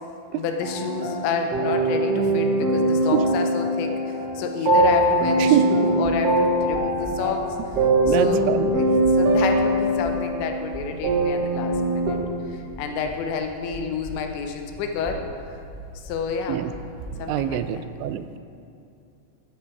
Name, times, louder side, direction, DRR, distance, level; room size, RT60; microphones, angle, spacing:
voice 1, 0.3-7.6 8.1-8.5 8.7-12.2 12.5-15.2 16.0-16.6 17.2-17.9, left 5 dB, 85° left, 4 dB, 3.3 m, -29 dB
sound 1, 0.6-12.1, right 1 dB, 60° right, 1.7 m, -22 dB
sound 2, 6.0-6.1 6.7-7.1 7.7-8.1 8.7-9.1 9.7-10.1 10.7-11.1 11.7-12.1 12.7-13.1 13.7-14.1 14.7-15.1 15.7-16.1 16.7-17.1, equal, 25° left, 0.6 m, -39 dB
voice 2, 8.1-8.7 16.5-16.7 17.3-18.4, right 12 dB, 85° right, 12 dB, 2.8 m, -24 dB
13.5 x 9.4 x 4.7 m, 2.6 s
omnidirectional pair, 5.1 m